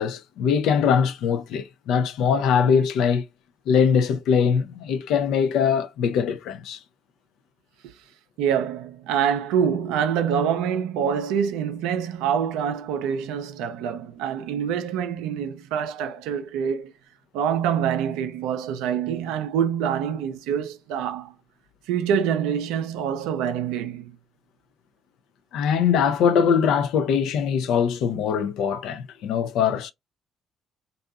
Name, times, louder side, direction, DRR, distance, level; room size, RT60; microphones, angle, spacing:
voice 1, 0.0-3.2 3.7-6.8 25.5-29.9, left 7 dB, 70° left, 0.4 m, -22 dB
voice 2, 8.4-16.9 17.3-21.3 21.9-24.1, right 8 dB, 75° right, 0.4 m, -25 dB
2.6 x 2.3 x 2.3 m
hypercardioid pair, 50°, 0 cm